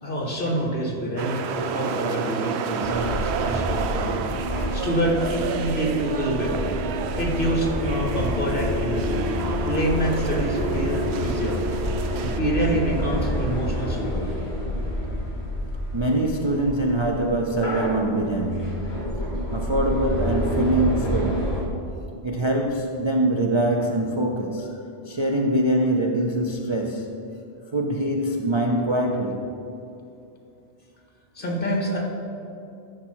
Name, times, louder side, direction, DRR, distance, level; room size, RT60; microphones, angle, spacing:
voice 1, 0.0-4.1 4.7-6.7 7.2-9.2 9.7-11.6 12.1-14.3 31.4-32.0, right 1 dB, 50° left, -2 dB, 2.1 m, -26 dB
sound 1, 1.2-12.4, right 5 dB, 70° right, 0.8 m, -30 dB
sound 2, 2.8-21.6, equal, 20° left, 2.4 m, -29 dB
voice 2, 15.9-19.1 19.5-21.8 22.2-24.7 25.1-27.2 27.7-29.5, right 1 dB, 35° right, 1 dB, 0.5 m, -24 dB
14.0 x 6.1 x 4.6 m, 2.7 s
omnidirectional pair, 1.2 m